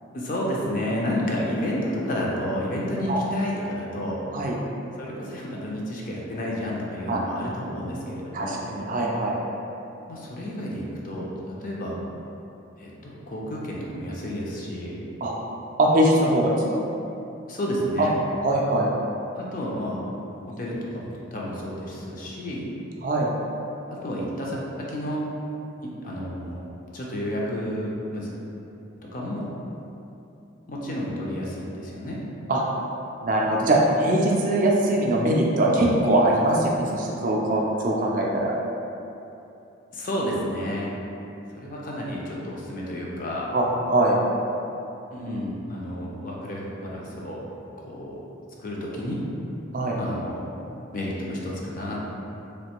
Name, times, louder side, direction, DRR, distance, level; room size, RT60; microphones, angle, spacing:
voice 1, 0.1-4.2 5.0-8.6 10.1-11.9 12.8-15.0 17.5-18.1 19.4-20.0 20.6-22.7 23.9-25.2 25.8-26.6 26.9-28.3 29.0-29.5 30.7-32.2 39.9-40.9 41.5-43.5 45.1-47.4 47.8-48.2 48.6-49.2 50.0-50.4 50.9-52.0, equal, 40° left, -4 dB, 0.4 m, -31 dB
voice 2, 8.3-9.4 15.2-15.3 15.8-16.8 18.0-18.1 18.4-18.9 23.0-23.3 32.5-32.6 33.2-38.5 43.5-44.2 49.7-50.0, right 1 dB, 40° right, -2 dB, 0.3 m, -22 dB
3.2 x 2.5 x 2.9 m, 2.8 s
head